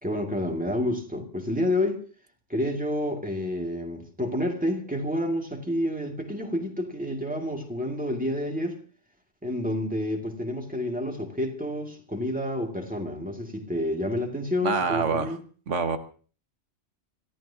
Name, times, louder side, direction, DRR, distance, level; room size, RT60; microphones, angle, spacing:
voice 1, 0.0-2.0 2.5-8.8 9.4-15.4, left 1 dB, 5° right, 2.2 m, -29 dB
voice 2, 14.6-15.4 15.7-16.0, right 5 dB, 80° right, 1.5 m, -26 dB
26.5 x 14.0 x 2.8 m
omnidirectional pair, 1.2 m